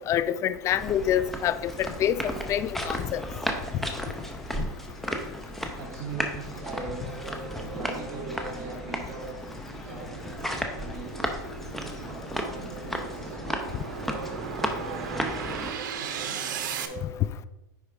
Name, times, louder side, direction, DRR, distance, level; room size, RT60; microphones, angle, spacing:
voice 1, 0.1-3.2, left 10 dB, 30° left, 15 dB, 0.3 m, -26 dB
sound 1, 0.7-15.7, equal, ahead, 0.8 m, -34 dB
sound 2, 4.0-16.9, right 8 dB, 85° right, 0.8 m, -39 dB
voice 2, 5.4-13.4 13.9-17.1, right 4 dB, 45° right, -5 dB, 1.8 m, -41 dB
9.7 x 4.7 x 3.5 m, 1.0 s
supercardioid pair, 135°, 10 cm